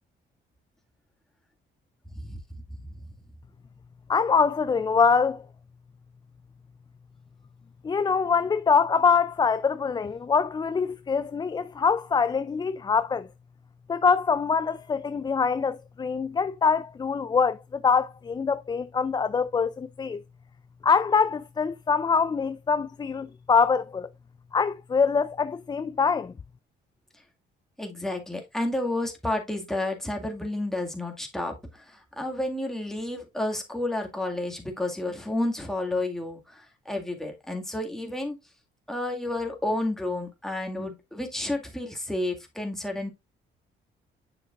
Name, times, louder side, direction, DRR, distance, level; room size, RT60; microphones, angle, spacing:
voice 1, 4.1-5.4 7.8-13.3 13.9-20.2 20.8-24.1 24.5-26.3, left 5 dB, 20° left, 0.3 m, -24 dB
voice 2, 27.8-31.5 31.9-38.4 38.9-43.1, left 1 dB, ahead, 1.9 m, -31 dB
7.6 x 6.3 x 2.4 m
cardioid pair, 90°, 20 cm